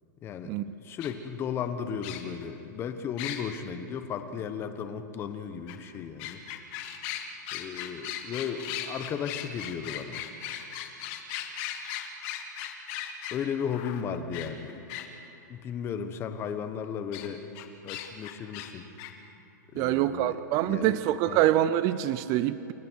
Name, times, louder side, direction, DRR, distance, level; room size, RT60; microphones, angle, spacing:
voice 1, 0.2-6.4 7.5-10.2 13.3-14.8 15.5-17.4 17.8-18.9 19.7-21.0 21.3-21.4, left 7 dB, 25° left, 9 dB, 1.3 m, -35 dB
sound 1, 1.0-1.1 2.0-2.4 3.2-3.4 5.7-5.8 6.2-15.1 17.1-17.3 17.6-18.7 19.0-19.1, left 11 dB, 40° left, 2.0 m, -37 dB
voice 2, 19.8-22.7, right 13 dB, 35° right, 14 dB, 0.5 m, -25 dB
29.0 x 23.0 x 4.7 m, 2.9 s
hypercardioid pair, 145°, 10 cm